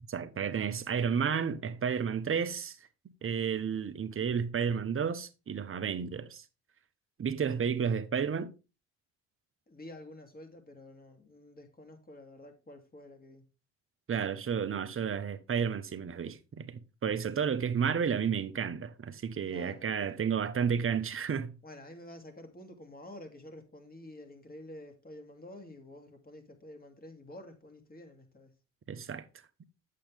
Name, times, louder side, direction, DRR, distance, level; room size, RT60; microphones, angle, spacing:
voice 1, 0.1-2.8 3.2-6.4 7.2-8.5 14.1-21.6 28.9-29.2, right 7 dB, 35° right, 1.1 m, -32 dB
voice 2, 9.7-13.5 19.4-19.9 21.6-28.5, left 1 dB, 25° left, 2.7 m, -49 dB
8.6 x 7.6 x 3.4 m
hypercardioid pair, 60°, 35 cm